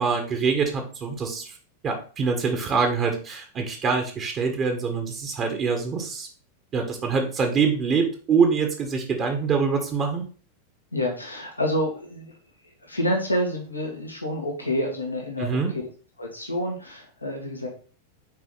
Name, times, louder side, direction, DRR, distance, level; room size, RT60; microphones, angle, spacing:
voice 1, 0.0-1.6 1.8-6.3 6.7-10.2 15.4-15.7, right 5 dB, 30° right, 4 dB, 1.5 m, -24 dB
voice 2, 10.9-12.4 12.8-15.5 16.2-17.7, equal, 85° left, 1 dB, 1.9 m, -28 dB
6.3 x 4.8 x 4.1 m, 0.40 s
figure-of-eight pair, 90°, 0 cm